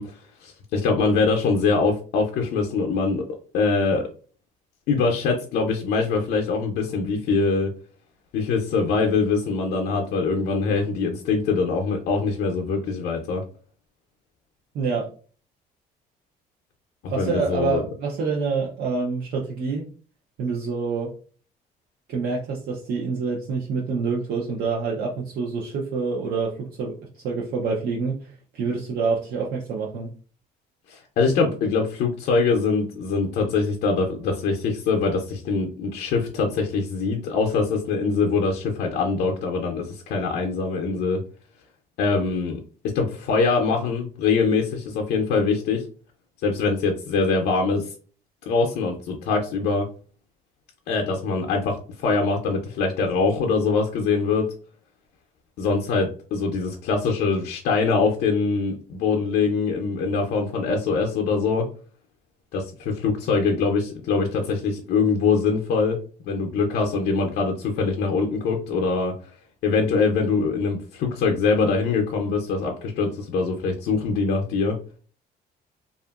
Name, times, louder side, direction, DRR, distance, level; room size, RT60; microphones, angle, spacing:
voice 1, 0.0-3.2 3.5-4.0 4.9-7.7 8.3-13.4 17.0-17.8 30.9-41.2 42.0-42.6 42.9-45.8 46.4-47.9 48.5-49.9 50.9-54.5 55.6-61.7 62.5-66.0 66.3-69.1 69.6-74.8, left 4 dB, 70° left, 1 dB, 0.5 m, -23 dB
voice 2, 14.7-15.1 17.1-19.8 20.4-21.1 22.1-27.0 27.2-30.1, right 4 dB, 70° right, -2 dB, 0.6 m, -27 dB
2.7 x 2.4 x 2.3 m, 0.40 s
cardioid pair, 110°, 17 cm